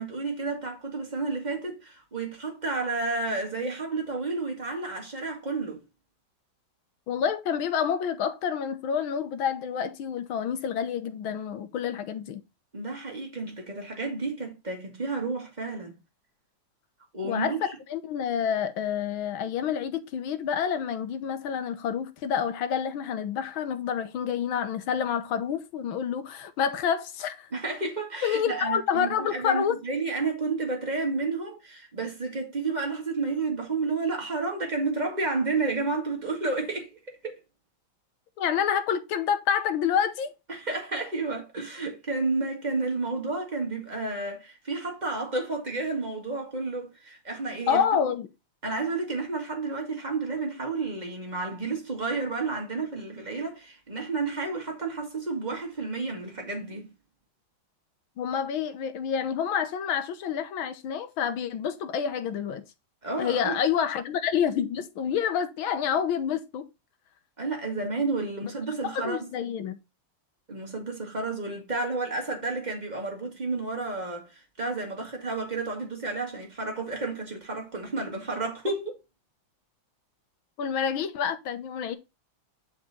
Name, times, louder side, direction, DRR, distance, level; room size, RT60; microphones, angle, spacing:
voice 1, 0.0-5.8 12.7-16.0 17.1-17.6 27.5-36.9 37.2-37.4 40.5-48.0 48.6-56.9 63.0-63.6 67.4-69.3 70.5-78.9, right 3 dB, 20° right, 2.1 m, -31 dB
voice 2, 7.1-12.4 17.2-17.5 17.9-27.5 28.2-29.8 38.4-40.3 47.7-48.3 58.2-62.6 63.2-66.6 68.4-68.5 68.8-69.8 80.6-82.0, left 8 dB, 85° left, 1.8 m, -28 dB
7.2 x 4.9 x 4.3 m
omnidirectional pair, 2.2 m